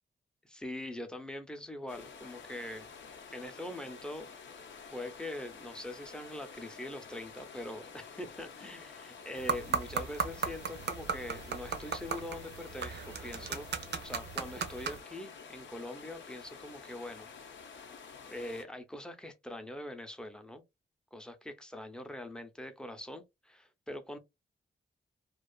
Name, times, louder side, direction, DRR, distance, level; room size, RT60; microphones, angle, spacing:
voice 1, 0.4-2.9 3.3-4.3 4.9-13.7 14.0-17.3 18.3-20.6 21.1-24.2, left 1 dB, 5° left, 0.5 m, -43 dB
sound 1, 1.9-18.6, left 5 dB, 80° left, 0.6 m, -50 dB
sound 2, 9.4-15.0, right 6 dB, 65° right, 0.5 m, -36 dB
2.4 x 2.3 x 2.2 m
cardioid pair, 80°, 19 cm